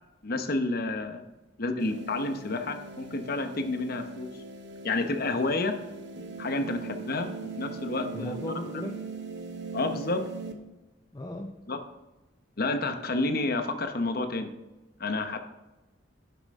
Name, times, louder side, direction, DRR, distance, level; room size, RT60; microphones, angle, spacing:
voice 1, 0.2-1.2 1.6-4.3 4.8-5.8 6.4-7.3 7.6-8.4 9.7-10.3 11.7-11.8 12.6-14.5 15.0-15.4, left 2 dB, 55° left, 7 dB, 1.0 m, -29 dB
sound 1, 1.8-10.5, right 4 dB, 65° right, 1.0 m, -41 dB
voice 2, 8.1-9.0 11.1-11.6, left 1 dB, 20° left, 3 dB, 0.6 m, -36 dB
10.5 x 7.7 x 3.7 m, 1.0 s
head